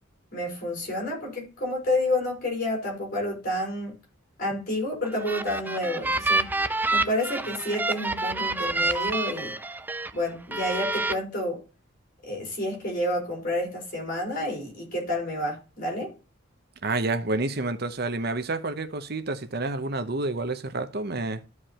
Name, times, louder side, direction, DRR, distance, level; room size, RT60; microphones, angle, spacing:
voice 1, 0.3-4.0 4.4-6.5 6.9-9.5 10.1-11.6 12.2-16.1, left 1 dB, 45° left, 4.8 m, -29 dB
sound 1, 5.0-10.1 10.5-11.1, right 2 dB, 10° right, 0.3 m, -28 dB
voice 2, 16.8-21.4, right 2 dB, 50° right, 0.9 m, -29 dB
13.5 x 4.8 x 2.9 m
head